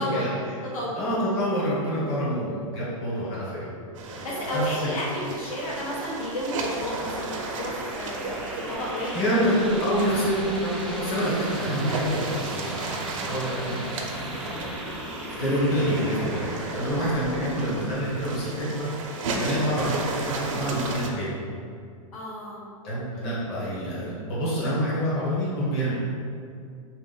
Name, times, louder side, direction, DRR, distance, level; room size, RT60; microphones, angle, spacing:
voice 1, 0.0-1.0 4.1-9.2 16.8-17.1 22.1-22.6 23.1-23.4, equal, 75° left, -6 dB, 1.4 m, -32 dB
voice 2, 1.0-3.7 4.1-4.3 4.5-4.9 9.1-14.8 15.4-18.9 19.4-21.4 22.8-25.9, equal, 30° left, -8 dB, 1.1 m, -27 dB
sound 1, 3.9-21.1, right 3 dB, 65° right, 0.6 m, -35 dB
sound 2, 6.2-19.3, right 1 dB, ahead, 0.4 m, -37 dB
3.2 x 2.9 x 3.9 m, 2.3 s
hypercardioid pair, 145°, 18 cm